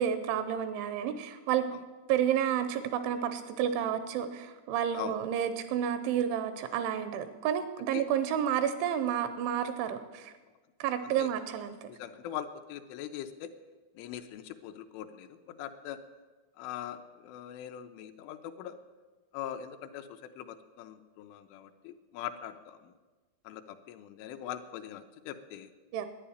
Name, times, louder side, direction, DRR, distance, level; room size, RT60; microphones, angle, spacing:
voice 1, 0.0-1.7 2.1-10.3 10.8-11.9 25.9-26.1, right 9 dB, 85° right, 10 dB, 2.9 m, -30 dB
voice 2, 11.9-13.6 14.0-16.0 16.6-18.8 19.3-22.9 23.4-25.7, left 10 dB, 80° left, 8 dB, 3.0 m, -42 dB
11.0 x 9.9 x 9.9 m, 1.3 s
omnidirectional pair, 5.8 m